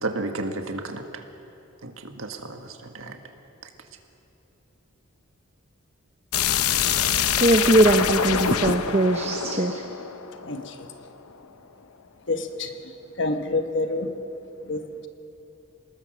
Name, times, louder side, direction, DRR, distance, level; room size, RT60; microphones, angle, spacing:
voice 1, 0.0-1.2 1.8-3.2, right 2 dB, 70° right, 5 dB, 1.7 m, -32 dB
sound 1, 6.3-11.0, left 8 dB, 90° left, 0.8 m, -25 dB
voice 2, 6.8-9.9, right 1 dB, 30° right, 5 dB, 0.8 m, -21 dB
voice 3, 10.4-10.7 12.3-12.7 13.2-14.1 14.7-14.8, left 2 dB, 55° left, 7 dB, 1.2 m, -27 dB
27.0 x 20.0 x 6.3 m, 2.9 s
head